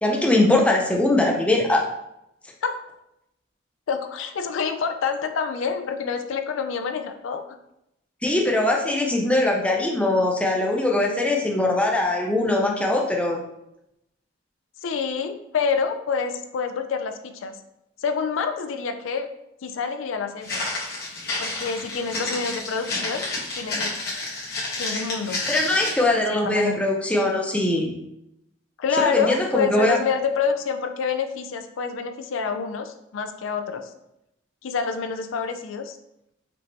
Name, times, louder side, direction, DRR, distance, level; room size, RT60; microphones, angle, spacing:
voice 1, 0.0-1.9 8.2-13.4 25.5-27.9 28.9-30.0, left 2 dB, 5° left, -1 dB, 0.5 m, -21 dB
voice 2, 3.9-7.4 8.8-9.0 14.8-17.6 18.0-19.3 19.6-20.6 21.4-23.3 23.6-24.0 24.8-25.4 26.1-26.8 28.8-33.9 34.6-36.0, left 5 dB, 80° left, 8 dB, 0.4 m, -27 dB
Walk footsteps, 20.4-26.1, left 2 dB, 55° left, 1.2 m, -30 dB
5.1 x 2.9 x 3.0 m, 0.83 s
head